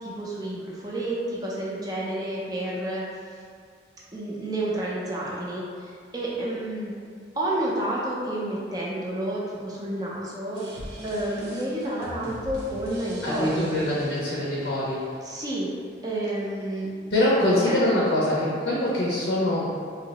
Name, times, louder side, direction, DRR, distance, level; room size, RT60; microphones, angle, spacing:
voice 1, 0.0-3.0 4.1-5.6 6.1-6.9 7.3-10.6 11.0-13.7 15.2-15.7 16.0-16.9 17.4-17.8, right 1 dB, 20° right, -5 dB, 0.5 m, -30 dB
sound 1, 10.5-15.5, right 1 dB, 65° right, 0.6 m, -41 dB
voice 2, 13.2-15.2 17.1-19.7, left 1 dB, 70° left, -7 dB, 0.6 m, -24 dB
2.7 x 2.0 x 3.9 m, 2.2 s
head